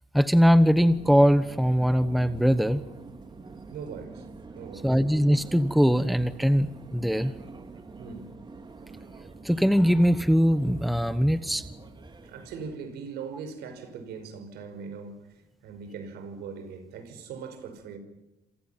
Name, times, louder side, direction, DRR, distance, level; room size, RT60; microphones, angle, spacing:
voice 1, 0.1-2.8 4.8-7.3 9.4-11.6, equal, ahead, 1.2 m, -21 dB
Subway metro underground, 0.8-12.8, right 4 dB, 25° right, 2.3 m, -45 dB
voice 2, 3.7-4.3 4.5-4.9 8.0-8.3 12.2-15.2 15.6-18.0, right 5 dB, 75° right, 5.3 m, -40 dB
27.5 x 27.5 x 5.8 m
cardioid pair, 110°, 17 cm